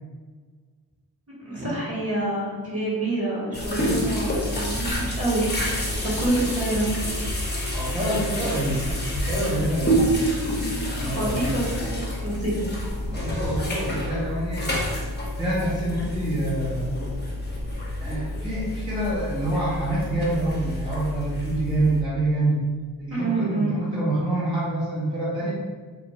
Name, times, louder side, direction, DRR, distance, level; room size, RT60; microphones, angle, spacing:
voice 1, 1.4-6.9 11.0-12.6 23.1-23.8, right 2 dB, 40° right, -6 dB, 1.4 m, -27 dB
sound 1, 3.5-22.0, equal, 25° left, 0.8 m, -28 dB
voice 2, 7.7-8.9 9.3-10.0 10.9-11.5 13.0-14.7 15.4-17.0 18.0-22.6 23.0-25.5, right 1 dB, 15° right, -8 dB, 0.8 m, -26 dB
2.6 x 2.5 x 3.0 m, 1.5 s
cardioid pair, 50°, 39 cm